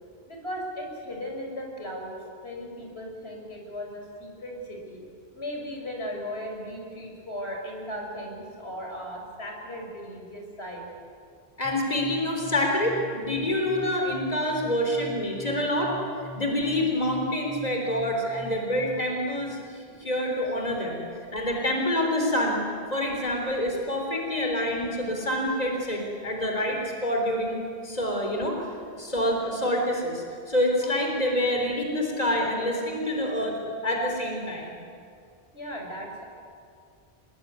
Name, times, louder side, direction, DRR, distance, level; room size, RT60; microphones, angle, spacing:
voice 1, 0.3-2.1 2.4-5.0 5.3-10.9 18.1-18.3 30.8-30.9 35.5-36.2, equal, 90° left, 1 dB, 5.1 m, -37 dB
voice 2, 11.6-15.9 16.3-21.0 21.3-22.6 22.9-28.6 29.0-33.6 33.8-34.8, left 1 dB, 40° left, 1 dB, 4.0 m, -27 dB
sound 1, 11.6-19.2, right 1 dB, ahead, 4.4 m, -43 dB
25.5 x 21.5 x 9.5 m, 2.3 s
omnidirectional pair, 1.0 m